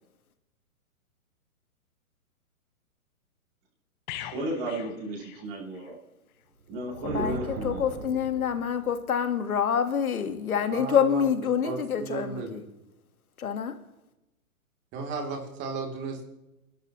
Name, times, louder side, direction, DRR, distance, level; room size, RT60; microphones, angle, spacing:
sound 1, 4.1-6.0 6.3-6.5, left 12 dB, 30° left, 1.2 m, -42 dB
voice 1, 4.2-6.0 6.7-7.8, right 1 dB, 40° right, 7.0 m, -34 dB
sound 2, 6.6-9.1, right 3 dB, 85° right, 2.7 m, -38 dB
voice 2, 7.1-12.6 13.4-13.8, left 8 dB, 75° left, 1.8 m, -27 dB
voice 3, 10.7-11.2 11.6-12.6 14.9-16.2, right 4 dB, 25° right, 3.3 m, -34 dB
28.5 x 12.0 x 3.2 m
hypercardioid pair, 135°, 43 cm